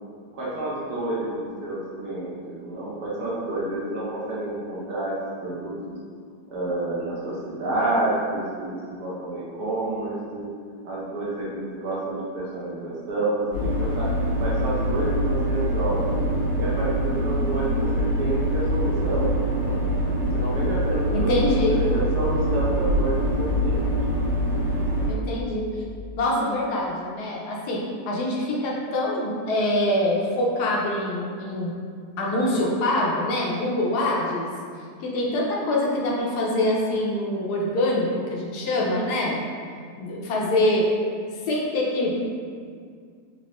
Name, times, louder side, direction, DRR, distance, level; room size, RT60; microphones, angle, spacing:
voice 1, 0.3-5.1 5.4-5.9 6.5-10.5 10.8-14.1 14.4-16.2 16.6-19.8 20.3-23.8, right 2 dB, 70° right, -8 dB, 1.2 m, -29 dB
sound 1, 13.5-25.1, equal, 45° right, 1.5 m, -24 dB
voice 2, 21.1-21.8 25.1-25.6 26.2-31.7 32.2-34.5 35.0-39.4 40.0-40.9 41.5-42.3, left 1 dB, 70° left, -3 dB, 1.1 m, -24 dB
4.0 x 2.5 x 2.9 m, 2.1 s
omnidirectional pair, 1.8 m